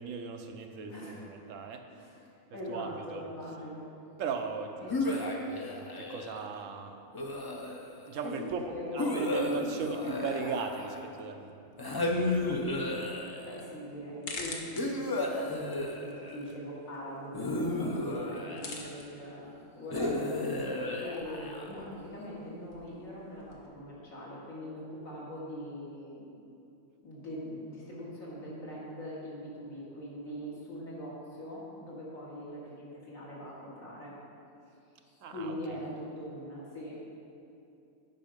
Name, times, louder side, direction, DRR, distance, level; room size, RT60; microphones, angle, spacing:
voice 1, 0.0-1.8 2.7-3.2 4.2-7.0 8.1-12.6 35.2-35.5, right 4 dB, 70° right, 5 dB, 1.0 m, -38 dB
voice 2, 0.9-1.3 1.9-2.3 2.5-3.9 4.8-5.0 5.7-5.8 8.2-9.4 13.3-20.7 21.0-26.4 27.0-34.2 35.0-37.0, equal, 90° left, -6 dB, 2.3 m, -42 dB
sound 1, 4.9-6.4 7.1-8.1 9.0-11.2 11.8-13.6 14.8-16.5 17.3-19.0 19.9-21.9, left 2 dB, 40° left, 0.3 m, -33 dB
sound 2, 12.4-23.7, left 3 dB, 70° left, 1.3 m, -48 dB
9.3 x 5.3 x 5.1 m, 2.6 s
omnidirectional pair, 1.4 m